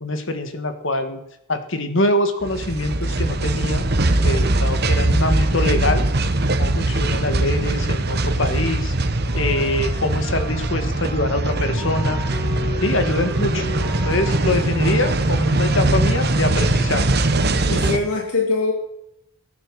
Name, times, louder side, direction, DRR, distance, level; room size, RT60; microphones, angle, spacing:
voice 1, 0.0-1.2 1.5-3.8 4.2-6.1 6.6-8.9 9.3-12.2 12.8-13.7 14.0-17.1, left 2 dB, 55° left, 8 dB, 1.7 m, -24 dB
sound 1, 2.4-18.0, right 2 dB, 45° right, 1.1 m, -21 dB
Wind instrument woodwind instrument, 9.2-17.5, left 2 dB, 15° left, 7.2 m, -37 dB
voice 2, 17.7-18.7, left 3 dB, 85° left, 1 dB, 2.4 m, -22 dB
18.5 x 9.5 x 6.4 m, 0.83 s
head